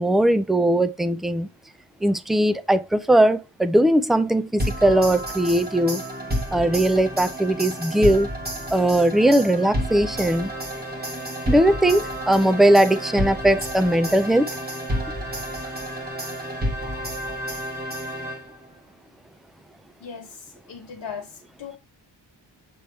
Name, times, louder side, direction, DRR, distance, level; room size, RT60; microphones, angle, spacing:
voice 1, 0.0-1.5 2.0-6.0 6.5-8.3 8.7-10.5 11.5-14.5, right 1 dB, ahead, 0.3 m, -19 dB
sound 1, 4.6-18.7, equal, 20° right, 1.6 m, -30 dB
voice 2, 20.0-21.8, left 6 dB, 65° left, 0.9 m, -38 dB
7.0 x 3.4 x 4.2 m
wide cardioid pair, 165°, 46 cm